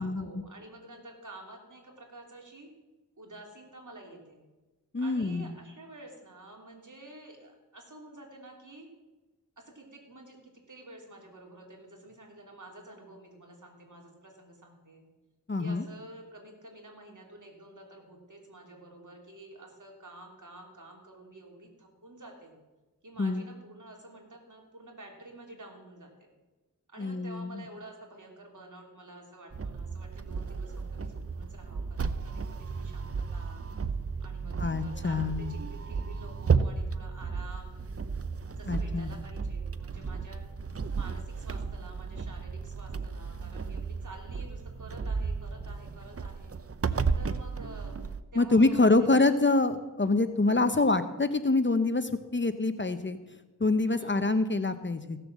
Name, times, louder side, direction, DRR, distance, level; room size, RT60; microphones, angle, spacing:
voice 1, 0.0-2.7 3.2-4.4 5.0-8.9 9.6-15.0 15.6-22.5 23.0-26.3 26.9-33.6 34.2-37.8 38.5-40.4 40.9-46.5 47.1-48.0 48.3-49.2 53.9-54.4, right 1 dB, 60° right, 1 dB, 3.2 m, -50 dB
voice 2, 4.9-5.5 15.5-15.8 23.2-23.4 27.0-27.6 34.6-35.5 38.7-39.1 48.4-53.2 53.6-55.2, left 3 dB, 35° left, 11 dB, 0.8 m, -26 dB
sound 1, 29.5-48.2, right 5 dB, 40° right, 0.7 m, -33 dB
16.0 x 6.8 x 7.3 m, 1.1 s
wide cardioid pair, 50°, 35 cm